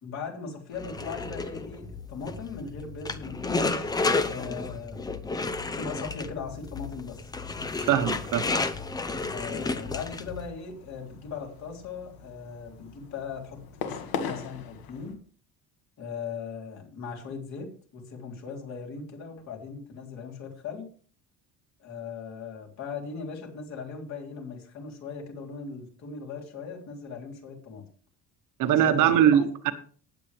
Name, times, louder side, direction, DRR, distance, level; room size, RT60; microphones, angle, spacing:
voice 1, 0.0-3.9 4.3-5.0 5.8-7.3 9.3-15.2 16.0-20.9 21.8-27.8 28.8-29.4, left 5 dB, 50° left, 1 dB, 3.5 m, -39 dB
sound 1, 0.7-10.5, left 3 dB, 10° left, 0.6 m, -32 dB
voice 2, 7.8-8.5 28.6-29.7, right 10 dB, 60° right, 8 dB, 1.3 m, -21 dB
sound 2, 9.3-15.1, left 7 dB, 75° left, 2.0 m, -40 dB
18.0 x 8.4 x 3.4 m, 0.43 s
cardioid pair, 175°, 36 cm